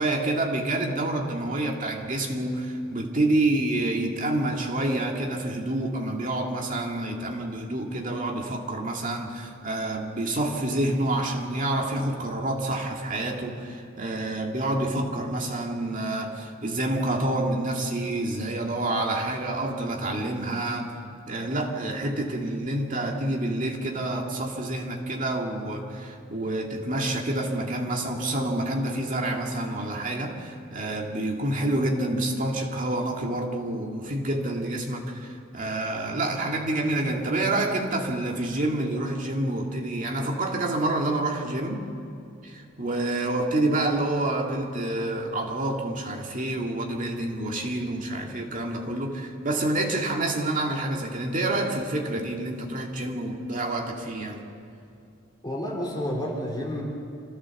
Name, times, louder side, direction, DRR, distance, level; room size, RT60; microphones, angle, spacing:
voice 1, 0.0-20.9 21.3-41.8 42.4-54.4, right 1 dB, 40° right, 1 dB, 2.2 m, -28 dB
voice 2, 55.4-56.8, equal, 20° left, -3 dB, 3.4 m, -30 dB
26.0 x 15.5 x 7.1 m, 2.6 s
head